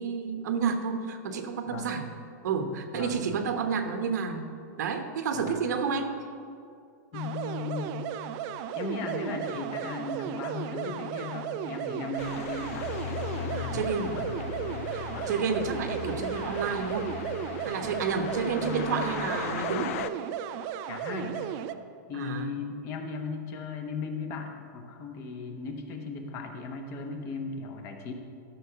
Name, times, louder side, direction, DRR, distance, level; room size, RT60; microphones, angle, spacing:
voice 1, 0.0-2.0 2.4-4.5 4.8-6.1 13.5-14.2 14.9-17.1 17.6-19.9 22.1-22.5, right 5 dB, 70° right, 6 dB, 1.1 m, -30 dB
voice 2, 1.7-2.0 2.9-3.4 5.3-5.7 7.1-7.9 8.7-12.9 13.5-14.4 15.1-15.3 18.4-19.2 20.9-21.5 22.1-28.1, left 4 dB, 30° left, 4 dB, 0.9 m, -37 dB
sound 1, 7.1-21.7, right 10 dB, 30° right, 0.4 m, -35 dB
sound 2, 12.2-20.1, left 9 dB, 50° left, 0.4 m, -37 dB
13.0 x 6.3 x 5.6 m, 2.4 s
supercardioid pair, 170°, 10 cm